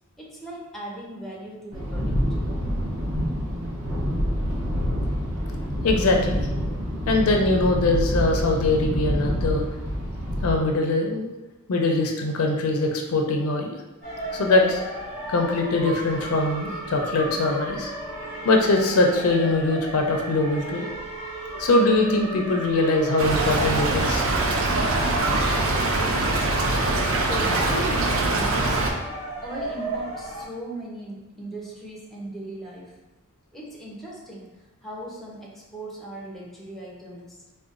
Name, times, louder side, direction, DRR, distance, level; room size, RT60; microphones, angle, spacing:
voice 1, 0.2-2.2 27.3-28.7 29.4-33.0 33.5-37.4, right 1 dB, ahead, -4 dB, 0.5 m, -37 dB
sound 1, 1.7-10.6, equal, 85° right, 0.9 m, -27 dB
voice 2, 5.8-6.4 7.1-9.6 10.4-11.3 11.7-13.7 14.3-14.8 15.3-17.9 18.4-20.8 21.5-24.2, left 2 dB, 85° left, 2 dB, 0.5 m, -22 dB
sound 2, 14.0-30.4, right 1 dB, 35° right, 1.4 m, -34 dB
Stream / Trickle dribble, 23.2-28.9, right 2 dB, 65° right, 0.5 m, -23 dB
3.9 x 2.2 x 2.4 m, 1.0 s
head